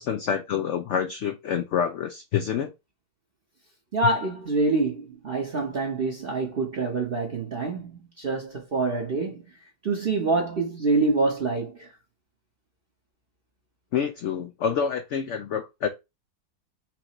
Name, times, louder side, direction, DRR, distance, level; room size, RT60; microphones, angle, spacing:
voice 1, 0.0-2.7 13.9-15.9, left 7 dB, 65° left, 0.7 m, -27 dB
voice 2, 3.9-11.9, right 3 dB, 45° right, 0.9 m, -26 dB
5.6 x 2.6 x 3.0 m
omnidirectional pair, 1.7 m